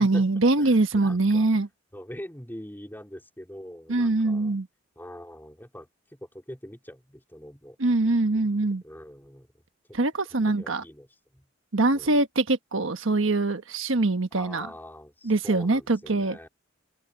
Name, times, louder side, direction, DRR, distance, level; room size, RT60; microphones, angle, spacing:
voice 1, 0.0-1.7 3.9-4.7 7.8-8.8 9.9-10.8 11.7-14.7 15.2-16.4, right 2 dB, 80° right, 1.3 m, -23 dB
voice 2, 0.6-1.5 1.9-4.6 5.0-7.8 8.3-8.5 8.8-9.5 9.9-10.0 10.3-11.5 11.9-12.2 14.3-16.5, equal, 10° left, 4.1 m, -43 dB
open air
head